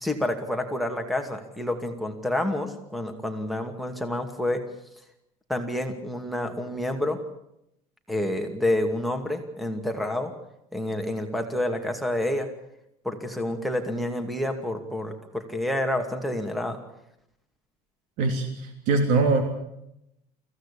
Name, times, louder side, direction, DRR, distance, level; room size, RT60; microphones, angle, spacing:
voice 1, 0.0-4.6 5.5-7.2 8.1-10.3 10.7-12.5 13.0-16.8, left 1 dB, ahead, 6 dB, 2.4 m, -28 dB
voice 2, 18.2-19.4, right 3 dB, 70° right, 5 dB, 3.2 m, -23 dB
24.0 x 16.0 x 8.5 m, 0.81 s
cardioid pair, 145°, 14 cm